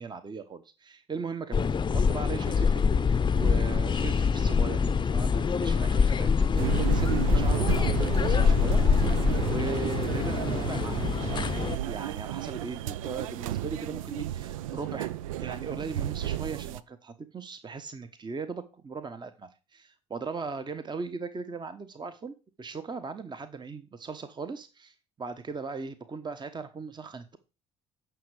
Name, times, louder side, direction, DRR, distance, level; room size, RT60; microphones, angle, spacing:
voice 1, 0.0-15.1 15.4-27.4, right 4 dB, 25° right, 1.1 m, -38 dB
sound 1, 1.5-11.8, left 5 dB, 30° left, 0.7 m, -25 dB
sound 2, 6.6-16.8, right 12 dB, 80° right, 0.5 m, -32 dB
9.3 x 6.0 x 4.8 m
hypercardioid pair, 60°, 17 cm